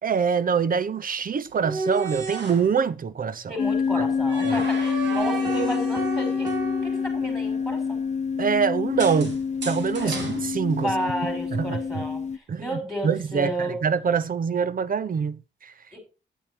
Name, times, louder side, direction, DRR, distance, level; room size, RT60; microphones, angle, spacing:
voice 1, 0.0-3.6 4.0-4.1 4.4-4.6 8.4-10.9 11.5-12.0 12.5-15.7, right 6 dB, 50° right, 0.8 m, -25 dB
sound 1, 1.5-2.7 4.3-7.2 9.0-11.2, right 4 dB, 75° right, 2.9 m, -34 dB
voice 2, 3.5-6.5 6.8-8.0 10.0-10.2 10.8-12.2 12.6-13.8 15.9-16.0, right 1 dB, ahead, 5.8 m, -31 dB
sound 2, 3.6-12.4, left 6 dB, 40° left, 0.6 m, -27 dB
sound 3, 5.4-7.9, right 3 dB, 15° right, 1.8 m, -36 dB
9.1 x 8.8 x 4.5 m
cardioid pair, 70°, 19 cm